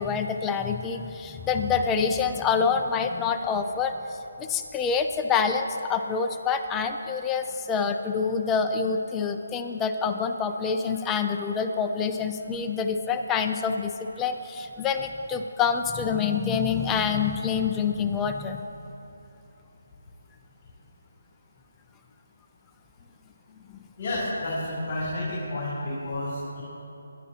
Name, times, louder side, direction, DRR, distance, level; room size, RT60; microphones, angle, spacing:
voice 1, 0.0-18.6, left 6 dB, 10° left, 5 dB, 0.5 m, -27 dB
voice 2, 24.0-26.6, left 1 dB, 40° left, -6 dB, 3.0 m, -30 dB
22.5 x 10.5 x 2.9 m, 2.9 s
hypercardioid pair, 165°, 0 cm